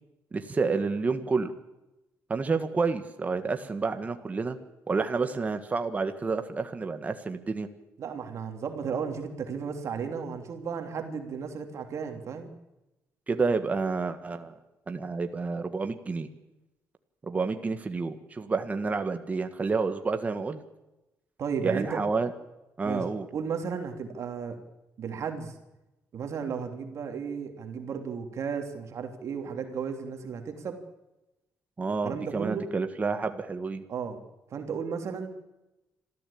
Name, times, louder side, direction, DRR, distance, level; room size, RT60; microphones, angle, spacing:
voice 1, 0.3-1.5 2.3-4.6 4.9-7.7 13.3-14.5 14.9-16.3 17.3-20.6 21.6-22.3 22.8-23.3 31.8-33.8, right 4 dB, 25° right, 7 dB, 1.6 m, -29 dB
voice 2, 8.0-12.5 21.4-22.0 22.8-23.0 23.3-24.6 25.0-25.5 26.1-30.8 32.0-32.7 33.9-34.2 34.5-35.3, right 6 dB, 55° right, 4 dB, 3.1 m, -34 dB
26.0 x 14.0 x 8.7 m, 0.98 s
cardioid pair, 135°, 6 cm